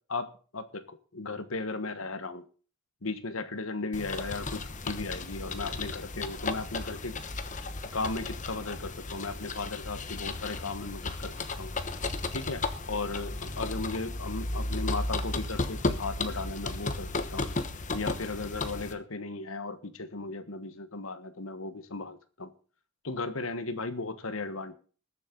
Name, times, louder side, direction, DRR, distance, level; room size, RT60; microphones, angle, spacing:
voice 1, 0.1-2.4 3.0-7.2 7.9-11.7 12.3-17.5 17.9-22.5 23.0-24.7, left 3 dB, 75° left, 11 dB, 1.3 m, -36 dB
sound 1, 3.9-18.9, left 2 dB, 35° left, 1.1 m, -34 dB
20.5 x 7.4 x 3.9 m, 0.39 s
head